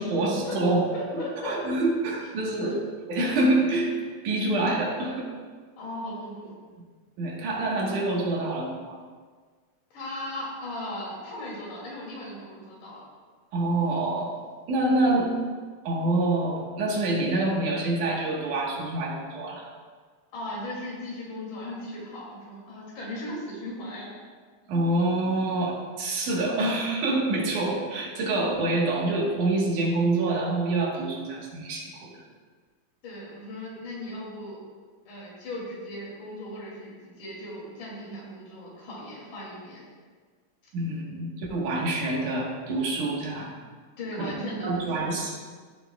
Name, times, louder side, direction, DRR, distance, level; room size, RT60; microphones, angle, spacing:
voice 1, 0.0-0.9 1.1-2.8 3.1-3.9 4.2-5.3 7.2-9.0 13.5-14.3 14.7-15.3 15.8-19.7 24.7-32.2 40.7-43.5 44.2-44.3 44.6-45.3, right 2 dB, 75° right, -2 dB, 2.9 m, -26 dB
voice 2, 0.9-1.5 5.8-6.5 9.9-13.0 20.3-24.1 33.0-34.6 35.1-39.9 44.0-45.2, left 1 dB, 75° left, -5 dB, 4.1 m, -37 dB
13.5 x 7.7 x 2.3 m, 1.6 s
omnidirectional pair, 3.6 m